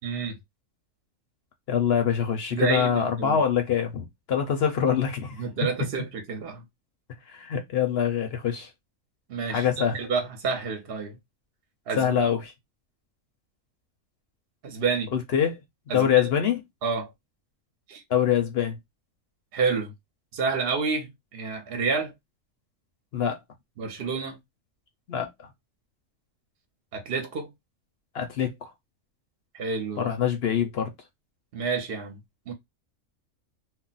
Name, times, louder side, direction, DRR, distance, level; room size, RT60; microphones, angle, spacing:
voice 1, 0.0-0.4 2.5-3.4 5.4-6.6 9.3-9.7 9.9-11.2 11.9-12.1 14.6-15.1 15.9-16.3 16.8-17.1 17.9-18.0 19.5-19.9 20.3-22.1 23.8-24.4 26.9-27.5 29.5-30.1 31.5-32.2 32.5-32.6, right 5 dB, 55° right, 0.8 m, -29 dB
voice 2, 1.7-5.4 7.3-8.7 9.5-10.0 12.0-12.5 15.1-15.6 15.9-16.6 18.1-18.8 23.1-23.4 25.1-25.5 28.1-28.7 30.0-30.9, left 8 dB, 60° left, 0.7 m, -25 dB
2.4 x 2.1 x 3.8 m
omnidirectional pair, 1.4 m